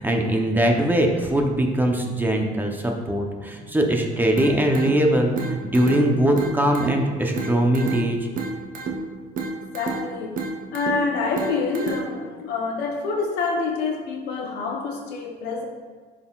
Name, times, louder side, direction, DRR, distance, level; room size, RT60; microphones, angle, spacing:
voice 1, 0.0-8.2, right 1 dB, 10° right, 2 dB, 0.7 m, -21 dB
sound 1, 4.4-12.4, right 3 dB, 55° right, 0.9 m, -32 dB
voice 2, 9.7-10.3 10.7-15.7, left 4 dB, 85° left, 1 dB, 0.8 m, -27 dB
10.5 x 3.9 x 2.4 m, 1.5 s
cardioid pair, 110°, 17 cm